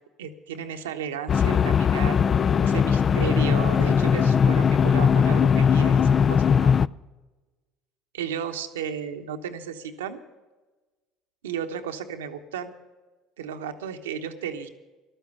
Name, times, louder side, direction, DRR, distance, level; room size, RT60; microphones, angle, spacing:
voice 1, 0.2-2.2 2.6-6.7 8.1-10.2 11.4-12.7 13.4-14.7, right 8 dB, 90° right, 7 dB, 0.9 m, -34 dB
sound 1, 1.3-6.9, left 7 dB, 40° left, 0.3 m, -20 dB
12.0 x 9.0 x 8.2 m, 1.2 s
hypercardioid pair, 70°, 0 cm